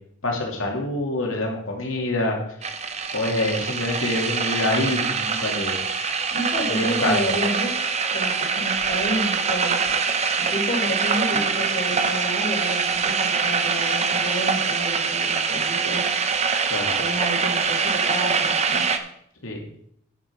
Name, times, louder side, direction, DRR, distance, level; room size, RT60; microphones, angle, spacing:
voice 1, 0.2-2.4 3.1-5.8 6.7-7.3 11.3-11.4 16.7-16.9 19.4-19.6, left 1 dB, 75° left, 0 dB, 2.7 m, -26 dB
sound 1, 2.6-19.0, right 5 dB, 30° right, 0.7 m, -24 dB
voice 2, 6.3-7.8 8.1-9.8 10.4-16.0 17.0-18.8, equal, 40° left, -2 dB, 4.0 m, -30 dB
9.8 x 8.9 x 4.7 m, 0.68 s
head